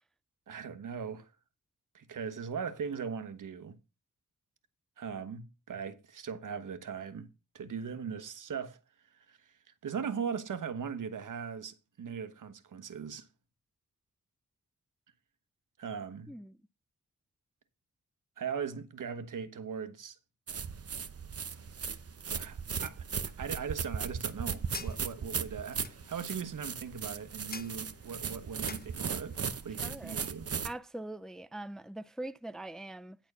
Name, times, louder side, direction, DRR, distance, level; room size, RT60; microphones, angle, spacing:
voice 1, 0.5-1.3 1.9-3.8 5.0-7.3 7.5-8.8 9.1-9.5 9.8-13.3 15.8-16.3 18.4-20.2 22.3-30.5, right 6 dB, 80° right, 1.2 m, -39 dB
voice 2, 16.3-16.6 29.8-30.2 30.6-33.2, right 1 dB, ahead, 0.4 m, -42 dB
sound 1, 20.5-30.7, right 6 dB, 50° right, 0.9 m, -37 dB
sound 2, 24.0-30.4, left 4 dB, 30° left, 0.8 m, -50 dB
10.0 x 4.4 x 6.8 m
cardioid pair, 80°, 31 cm